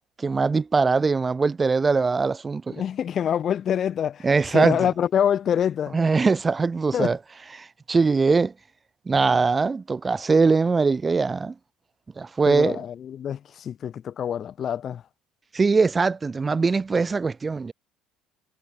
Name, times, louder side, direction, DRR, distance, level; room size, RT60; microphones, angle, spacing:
voice 1, 0.2-2.8 4.2-4.8 5.9-7.2 7.6-8.5 9.1-11.5 12.2-12.8 15.5-17.7, right 4 dB, 20° right, 2.0 m, -21 dB
voice 2, 2.7-4.3 4.5-6.0 6.9-7.1 12.5-15.0, left 9 dB, 40° left, 2.6 m, -25 dB
supercardioid pair, 105°, 0 cm